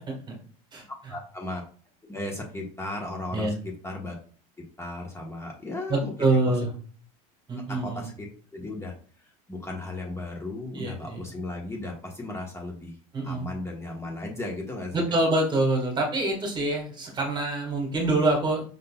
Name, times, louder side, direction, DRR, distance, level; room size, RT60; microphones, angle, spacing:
voice 1, 1.1-1.6 2.1-3.6 3.8-4.2 4.8-6.3 7.7-8.3 8.5-13.0 13.2-15.2, left 2 dB, 15° left, 0 dB, 1.1 m, -36 dB
voice 2, 5.9-6.7 7.5-8.1 10.7-11.2 13.1-13.5 14.9-18.6, right 2 dB, 25° right, 1 dB, 1.5 m, -25 dB
5.4 x 3.7 x 2.3 m, 0.42 s
supercardioid pair, 110°, 19 cm